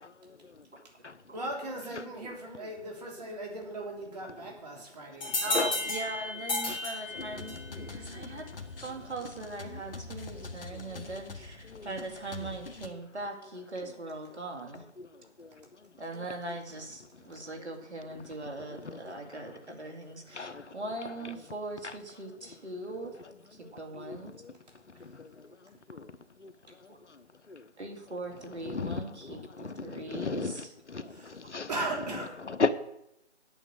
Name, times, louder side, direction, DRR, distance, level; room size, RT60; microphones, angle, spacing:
voice 1, 1.3-5.6 31.1-31.4 31.7-32.3, right 2 dB, 35° right, 3.3 m, -38 dB
sound 1, 5.2-7.8, left 2 dB, 20° left, 3.0 m, -33 dB
voice 2, 5.4-8.5 8.8-14.8 16.0-23.2 23.5-24.3 26.9-27.0 27.8-30.7 31.3-31.4, right 2 dB, 70° right, 2.7 m, -40 dB
sound 2, 7.2-12.9, left 3 dB, 50° left, 1.3 m, -44 dB
voice 3, 28.7-29.0 30.1-30.6 31.5-31.7 32.4-32.7, left 4 dB, 75° left, 1.1 m, -29 dB
8.9 x 8.3 x 6.5 m
figure-of-eight pair, 160°, 35 cm